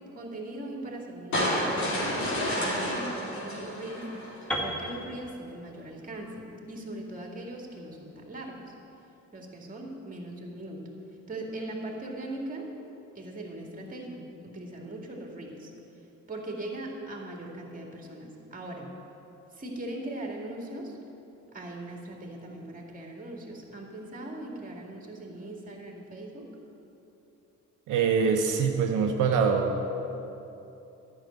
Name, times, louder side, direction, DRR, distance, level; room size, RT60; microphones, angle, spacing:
voice 1, 0.2-4.1 4.6-8.7 9.3-10.8 11.3-12.7 13.1-15.7 16.3-18.9 19.5-21.0 21.5-26.5, right 1 dB, 30° right, 0 dB, 2.3 m, -40 dB
sound 1, 1.3-4.6, equal, 70° left, 3.1 m, -30 dB
Piano, 4.5-8.4, equal, 5° left, 1.9 m, -37 dB
voice 2, 27.9-29.8, right 6 dB, 80° right, 3 dB, 0.8 m, -24 dB
10.5 x 6.4 x 8.7 m, 3.0 s
cardioid pair, 90°, 30 cm